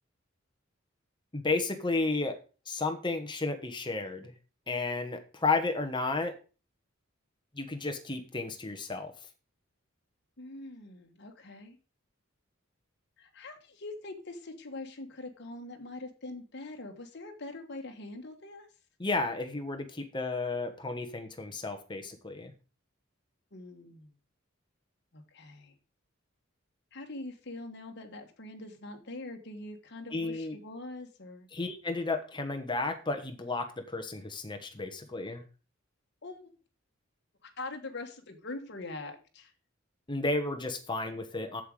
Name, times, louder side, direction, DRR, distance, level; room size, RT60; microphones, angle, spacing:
voice 1, 1.3-2.4 2.7-4.3 4.7-6.4 7.5-9.1 19.0-22.5 30.1-30.6 31.5-35.4 40.1-41.6, left 3 dB, 20° left, 6 dB, 1.1 m, -32 dB
voice 2, 10.4-11.8 13.2-18.7 23.5-24.1 25.1-25.7 26.9-31.5 36.2-36.5 37.4-39.5, left 2 dB, 55° left, 5 dB, 1.4 m, -43 dB
7.7 x 7.6 x 4.9 m, 0.34 s
head